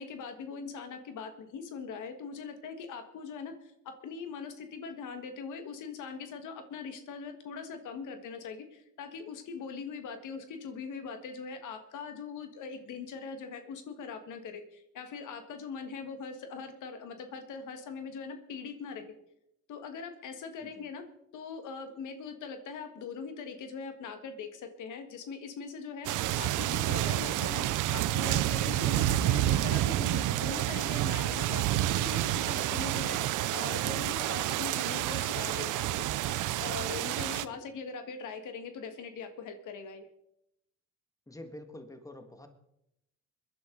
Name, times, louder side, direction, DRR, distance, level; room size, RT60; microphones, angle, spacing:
voice 1, 0.0-19.2 19.7-21.0 21.3-26.1 26.4-27.6 27.9-36.1 36.6-40.1, left 5 dB, 80° left, 8 dB, 1.7 m, -41 dB
sound 1, 26.0-37.5, right 14 dB, 85° right, 0.6 m, -29 dB
voice 2, 41.3-42.5, left 1 dB, 10° left, 6 dB, 1.8 m, -47 dB
22.0 x 10.5 x 3.9 m, 0.80 s
cardioid pair, 90°, 30 cm